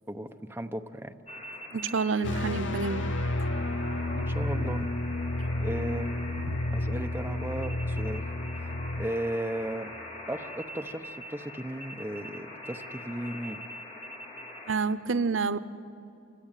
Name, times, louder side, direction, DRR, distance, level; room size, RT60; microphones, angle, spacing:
voice 1, 0.1-1.2 4.1-4.9 5.6-6.1 6.7-8.3 8.6-8.7 9.0-9.9 10.3-13.6, right 1 dB, 10° right, 5 dB, 0.8 m, -35 dB
sound 1, 1.3-14.8, left 1 dB, 30° left, 2.9 m, -43 dB
voice 2, 1.7-3.0 14.7-15.6, right 4 dB, 90° right, 14 dB, 0.8 m, -28 dB
sound 2, 2.2-9.1, left 1 dB, 75° left, 0.8 m, -31 dB
27.5 x 24.0 x 9.0 m, 2.6 s
head